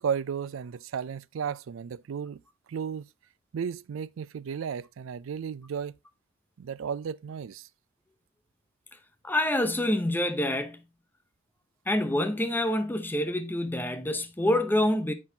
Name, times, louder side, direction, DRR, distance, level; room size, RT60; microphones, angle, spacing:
voice 1, 0.0-2.4 2.7-3.0 3.5-6.0 6.6-7.7, right 7 dB, 75° right, 0.4 m, -34 dB
voice 2, 9.2-10.8 11.9-15.1, left 1 dB, 10° left, 0.6 m, -26 dB
7.6 x 6.0 x 2.7 m
head